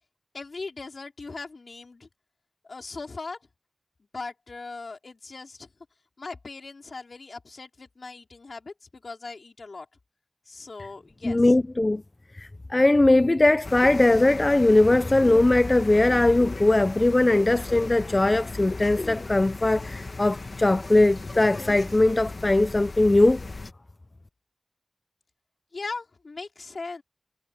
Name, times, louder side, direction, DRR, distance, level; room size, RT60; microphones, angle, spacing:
voice 1, 0.3-2.1 2.6-3.4 4.1-5.7 6.2-9.9 10.5-11.6 25.7-27.0, left 3 dB, 75° left, 4.7 m, -39 dB
voice 2, 11.2-12.0 12.3-23.4, left 2 dB, 35° left, 0.5 m, -20 dB
sound 1, 13.6-23.7, left 3 dB, 55° left, 1.6 m, -36 dB
wide cardioid pair, 80°, 0 cm